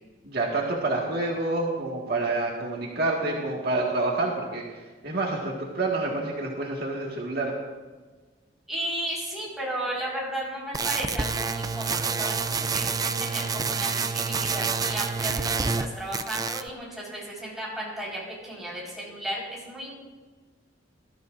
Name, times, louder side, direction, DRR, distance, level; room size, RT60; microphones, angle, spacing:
voice 1, 0.2-4.6 5.0-7.5, right 2 dB, 60° right, -2 dB, 1.8 m, -28 dB
voice 2, 8.7-19.9, right 1 dB, ahead, -6 dB, 4.6 m, -34 dB
sound 1, 10.7-15.9 16.1-16.7, right 5 dB, 20° right, 0.4 m, -28 dB
21.0 x 12.5 x 2.6 m, 1.4 s
head